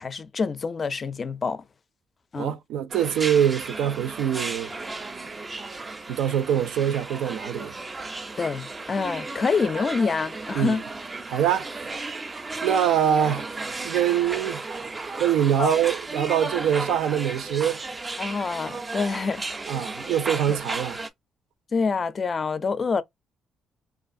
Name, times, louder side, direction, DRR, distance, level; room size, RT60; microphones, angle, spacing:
voice 1, 0.0-1.6 2.3-2.6 8.4-10.8 15.6-15.8 18.2-19.5 20.5-20.6 21.7-23.0, left 5 dB, 40° left, 0.4 m, -26 dB
voice 2, 2.4-4.7 6.1-7.8 10.6-10.8 11.3-11.7 12.6-13.5 13.8-14.6 15.2-17.8 19.7-21.0, right 9 dB, 85° right, 0.5 m, -24 dB
sound 1, 2.9-21.1, right 3 dB, 25° right, 0.4 m, -34 dB
2.5 x 2.5 x 2.5 m
cardioid pair, 90°, 0 cm